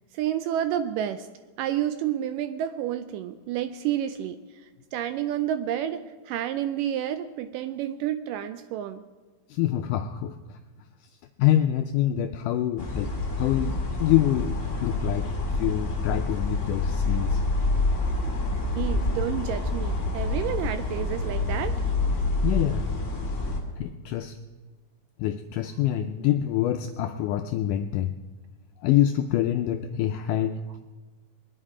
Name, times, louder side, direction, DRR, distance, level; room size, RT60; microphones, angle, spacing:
voice 1, 0.1-1.3 1.6-4.4 4.9-9.0 18.8-21.7, right 11 dB, 80° right, 11 dB, 2.0 m, -30 dB
voice 2, 9.5-10.6 11.4-17.4 22.4-22.9 23.8-24.3 25.2-28.1 28.8-30.6, left 12 dB, 85° left, 6 dB, 1.8 m, -26 dB
sound 1, 12.8-23.6, left 2 dB, 30° left, 1.3 m, -27 dB
22.0 x 10.0 x 4.9 m, 1.4 s
omnidirectional pair, 4.2 m